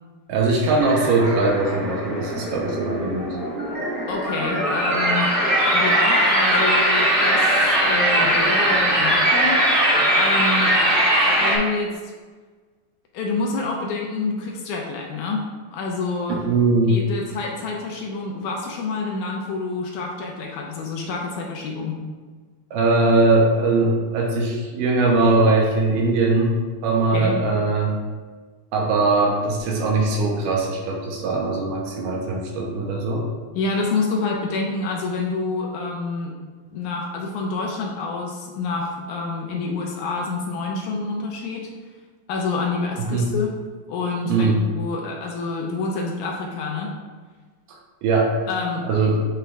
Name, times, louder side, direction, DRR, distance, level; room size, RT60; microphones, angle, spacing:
voice 1, 0.3-3.3 16.3-17.0 22.7-26.6 26.8-28.0 28.7-33.3 43.1-43.3 44.3-44.6 47.7-48.3 48.8-49.2, right 3 dB, 80° right, -1 dB, 2.5 m, -20 dB
sound 1, 0.8-11.6, right 1 dB, 40° right, 0.7 m, -20 dB
voice 2, 4.1-5.3 5.7-9.6 10.1-10.8 11.4-11.9 13.1-15.4 15.7-16.5 16.9-22.0 27.1-27.3 33.5-36.3 36.7-41.7 42.3-43.5 43.9-46.9 48.5-49.2, left 3 dB, 75° left, 0 dB, 2.0 m, -27 dB
8.3 x 3.6 x 3.4 m, 1.4 s
omnidirectional pair, 3.9 m